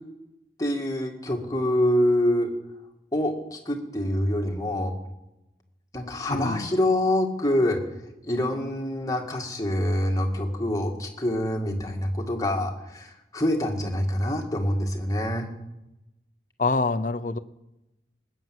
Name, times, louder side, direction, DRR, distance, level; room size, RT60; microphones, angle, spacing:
voice 1, 0.6-2.5 3.1-4.9 5.9-7.8 8.2-15.5, left 1 dB, 20° left, 2 dB, 2.0 m, -26 dB
voice 2, 6.3-6.7 16.6-17.4, left 3 dB, 45° left, 12 dB, 0.7 m, -25 dB
19.5 x 9.2 x 7.7 m, 0.94 s
head